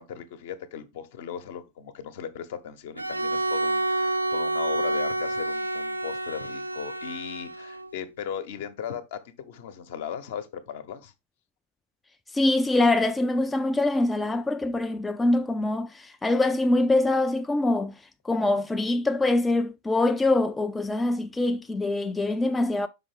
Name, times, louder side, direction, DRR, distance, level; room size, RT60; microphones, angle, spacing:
voice 1, 0.0-11.1, left 8 dB, 55° left, 0.9 m, -37 dB
Bowed string instrument, 3.0-7.9, right 2 dB, 85° right, 0.4 m, -28 dB
voice 2, 12.3-17.9 18.2-22.9, left 2 dB, 10° left, 0.4 m, -24 dB
5.5 x 4.7 x 3.6 m
figure-of-eight pair, 90°, 0 cm